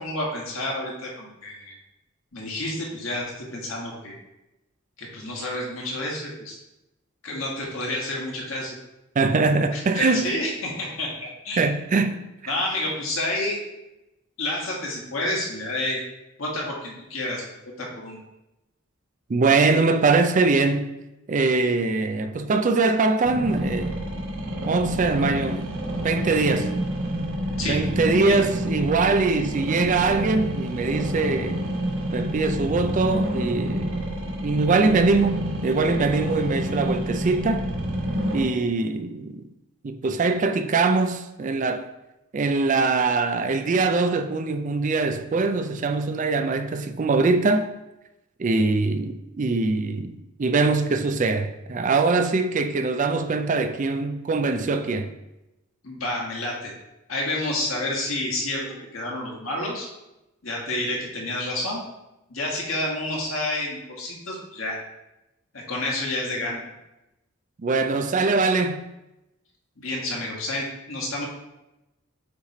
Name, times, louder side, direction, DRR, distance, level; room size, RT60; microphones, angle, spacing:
voice 1, 0.0-1.7 2.3-4.2 5.0-6.6 7.2-8.7 9.7-11.7 12.5-13.6 14.4-16.0 16.4-17.4 17.8-18.2 27.6-27.8 28.3-28.4 55.8-56.7 57.1-58.7 58.9-59.9 60.4-61.8 62.3-64.8 65.5-66.6 69.8-71.3, left 1 dB, 75° left, 1.6 m, -29 dB
voice 2, 9.2-10.3 11.6-12.2 12.4-12.5 19.3-20.9 21.3-23.9 24.5-25.6 26.0-26.7 27.6-31.6 32.1-33.9 34.4-37.6 38.3-39.5 39.8-41.9 42.3-47.7 48.4-55.1 67.6-68.9, right 3 dB, 40° right, 0.4 m, -22 dB
sound 1, 23.2-38.4, equal, 80° right, 1.4 m, -28 dB
8.5 x 3.1 x 4.2 m
head